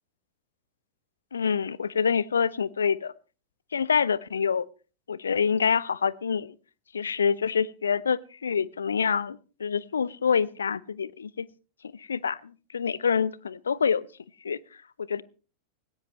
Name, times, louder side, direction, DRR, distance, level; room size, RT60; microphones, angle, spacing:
voice 1, 1.3-3.1 3.7-4.7 5.1-6.5 6.9-11.5 12.0-12.4 12.7-14.1 14.4-14.6 15.1-15.2, left 6 dB, 70° left, 22 dB, 0.6 m, -26 dB
18.5 x 17.0 x 3.1 m, 0.35 s
figure-of-eight pair, 90°, 0 cm